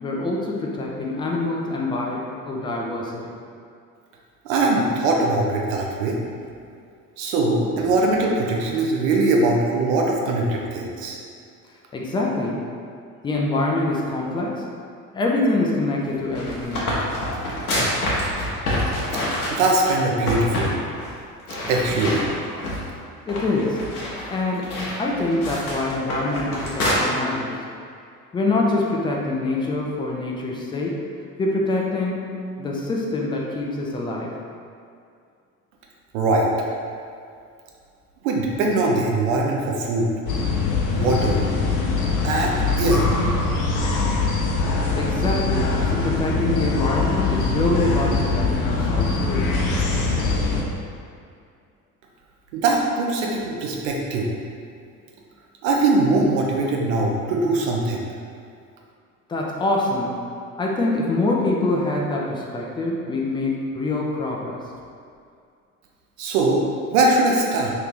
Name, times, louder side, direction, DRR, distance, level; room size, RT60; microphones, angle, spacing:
voice 1, 0.0-3.3 11.9-12.6 13.2-14.6 15.1-16.9 23.3-23.8 24.3-24.7 25.0-27.6 28.3-31.0 31.4-32.3 32.6-34.3 44.9-49.5 59.3-60.2 60.6-64.6, left 2 dB, 10° left, -2 dB, 0.4 m, -25 dB
voice 2, 4.4-6.2 7.2-11.2 19.5-20.7 21.7-22.2 36.1-36.5 38.2-40.1 40.9-41.4 42.2-43.1 52.5-54.3 55.6-58.0 66.2-66.6 66.9-67.7, right 2 dB, 60° right, -1 dB, 0.7 m, -21 dB
sound 1, 16.1-19.9 20.3-20.7 21.0-21.1 21.5-22.9 23.3-26.9, left 1 dB, 75° left, 0.9 m, -27 dB
sound 2, 40.3-50.6, left 3 dB, 45° left, 0.7 m, -22 dB
3.1 x 2.7 x 3.6 m, 2.3 s
figure-of-eight pair, 60°, 45 cm